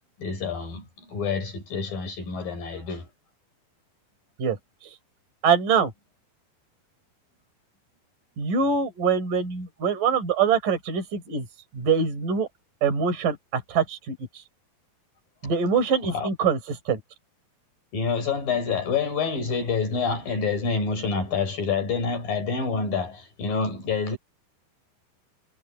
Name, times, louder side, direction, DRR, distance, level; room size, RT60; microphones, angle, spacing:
voice 1, 0.2-3.1 15.4-15.5 16.0-16.3 17.9-24.2, left 5 dB, 65° left, 7.4 m, -27 dB
voice 2, 5.4-5.9 8.4-11.4 11.7-12.5 12.8-14.2 15.4-16.6 16.9-17.0, right 6 dB, 60° right, 6.5 m, -23 dB
omnidirectional pair, 4.3 m